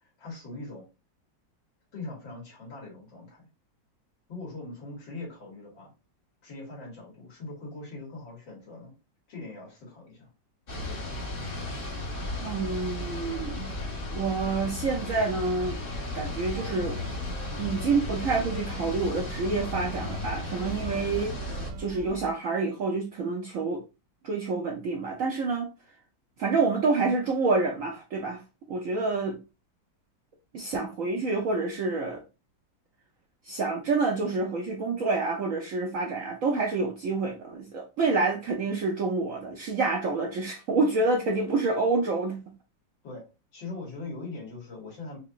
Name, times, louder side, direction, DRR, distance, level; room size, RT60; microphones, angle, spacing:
voice 1, 0.0-0.8 1.9-3.5 4.3-5.9 6.4-8.9 9.3-10.3 10.7-11.1 43.0-43.2 43.5-45.2, left 3 dB, 80° left, 2.5 m, -41 dB
sound 1, 10.7-21.7, left 2 dB, 40° left, 0.8 m, -35 dB
voice 2, 12.4-13.7 14.1-15.8 16.1-17.0 17.6-23.8 24.2-25.7 26.4-28.4 28.7-29.4 30.5-32.2 33.4-42.4, right 3 dB, 70° right, 0.8 m, -28 dB
sound 2, 15.9-22.3, right 5 dB, 85° right, 1.4 m, -44 dB
4.7 x 2.9 x 2.4 m
omnidirectional pair, 2.0 m